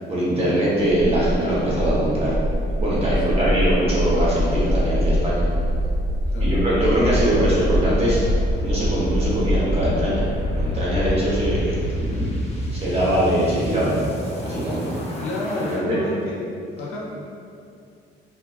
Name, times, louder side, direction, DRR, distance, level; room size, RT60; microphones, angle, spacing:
voice 1, 0.1-2.3 2.8-5.5 6.4-8.2 8.6-10.2 10.5-11.8 12.7-14.0 14.4-15.0 15.6-16.0, right 1 dB, 30° right, -8 dB, 0.9 m, -22 dB
sound 1, 1.0-15.8, equal, 30° left, 0.5 m, -24 dB
voice 2, 3.0-3.7 6.3-6.6 15.2-16.4 16.8-17.0, left 1 dB, 85° left, -5 dB, 0.4 m, -29 dB
2.4 x 2.3 x 2.3 m, 2.4 s
cardioid pair, 90°, 20 cm